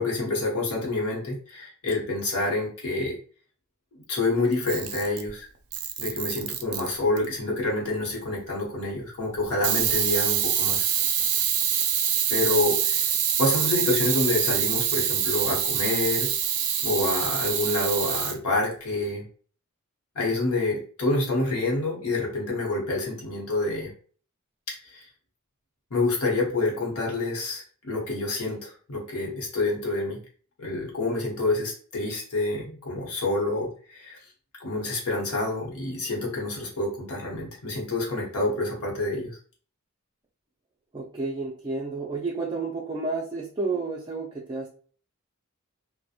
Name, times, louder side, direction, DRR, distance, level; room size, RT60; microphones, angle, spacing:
voice 1, 0.0-3.2 3.9-5.5 6.0-10.8 12.3-13.0 13.4-16.3 16.8-19.3 20.1-23.9 24.8-25.1 25.9-30.2 30.6-34.2 34.6-39.4, left 2 dB, 85° left, -2 dB, 0.9 m, -27 dB
Camera, 4.5-5.3 5.7-7.2 9.6-18.4, right 9 dB, 90° right, 0.4 m, -25 dB
voice 2, 40.9-44.7, right 3 dB, 20° right, -3 dB, 0.3 m, -31 dB
2.8 x 2.1 x 2.3 m, 0.43 s
head